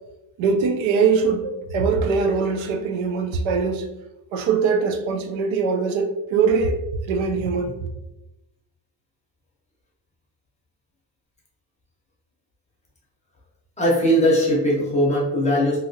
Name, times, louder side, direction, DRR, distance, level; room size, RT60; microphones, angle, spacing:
voice 1, 0.4-3.9 4.3-7.7, right 5 dB, 90° right, 6 dB, 0.5 m, -22 dB
voice 2, 13.8-15.8, equal, 15° left, -4 dB, 0.6 m, -19 dB
3.0 x 2.6 x 2.6 m, 0.99 s
cardioid pair, 175°, 45 cm